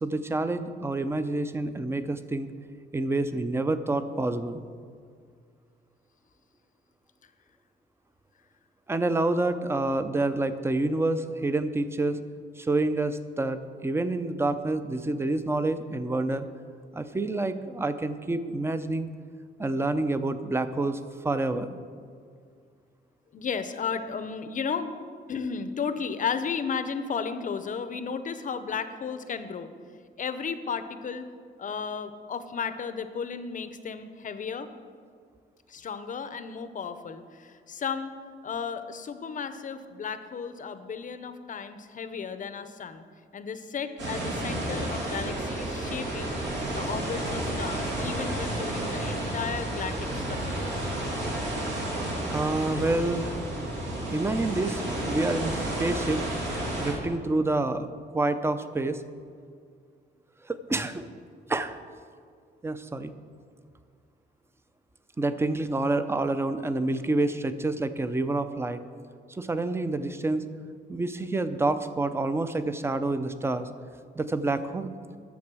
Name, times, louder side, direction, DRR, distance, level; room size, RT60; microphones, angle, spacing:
voice 1, 0.0-2.5 2.9-4.6 8.9-12.2 12.6-16.5 16.9-19.1 19.6-21.8 52.3-53.4 54.1-56.3 56.8-57.9 58.1-59.0 60.4-61.1 61.5-61.8 62.6-63.1 65.2-68.8 69.3-70.5 70.9-73.7 74.2-74.9, right 2 dB, 15° right, 11 dB, 0.5 m, -28 dB
voice 2, 23.3-24.9 25.3-29.7 30.2-31.3 31.6-34.7 35.7-38.1 38.4-43.0 43.3-46.4 46.7-50.9, left 6 dB, 45° left, 10 dB, 0.6 m, -34 dB
sound 1, 44.0-56.9, right 1 dB, 75° right, 2.7 m, -31 dB
10.5 x 7.1 x 6.1 m, 2.1 s
cardioid pair, 130°, 19 cm